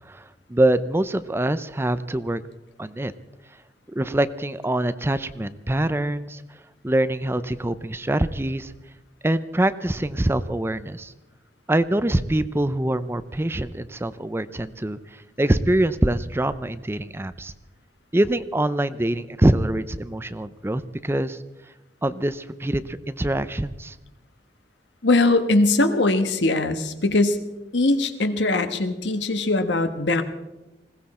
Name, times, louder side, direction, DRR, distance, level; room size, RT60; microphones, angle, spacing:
voice 1, 0.1-2.4 2.8-3.1 3.9-6.4 6.8-8.7 9.2-11.1 11.7-15.0 15.4-17.5 18.1-21.4 22.0-23.9, right 1 dB, 15° right, 13 dB, 0.5 m, -24 dB
voice 2, 25.0-27.4 27.7-30.2, left 2 dB, 85° left, 9 dB, 1.3 m, -21 dB
20.5 x 16.5 x 4.3 m, 1.0 s
head